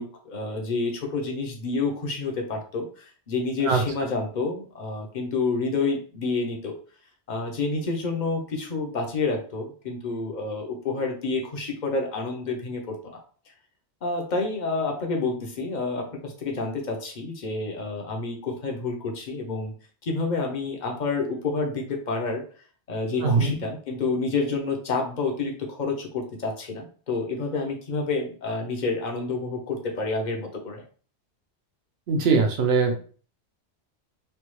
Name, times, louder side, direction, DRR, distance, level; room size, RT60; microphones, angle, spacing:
voice 1, 0.0-6.8 7.3-13.2 14.0-19.7 20.0-22.4 22.9-30.8, left 3 dB, 45° left, 1 dB, 0.8 m, -29 dB
voice 2, 23.2-23.6 32.1-33.0, right 4 dB, 65° right, 4 dB, 0.9 m, -21 dB
3.3 x 2.3 x 3.1 m, 0.41 s
omnidirectional pair, 1.2 m